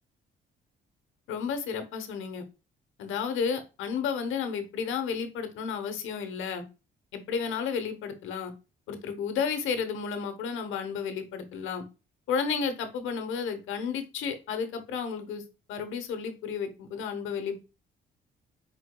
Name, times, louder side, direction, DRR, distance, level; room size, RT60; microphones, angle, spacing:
voice 1, 1.3-2.4 3.0-6.6 7.1-8.5 8.9-11.8 12.3-15.4 15.7-17.6, left 6 dB, 85° left, 8 dB, 0.9 m, -32 dB
4.7 x 4.4 x 2.2 m, 0.29 s
cardioid pair, 90°, 20 cm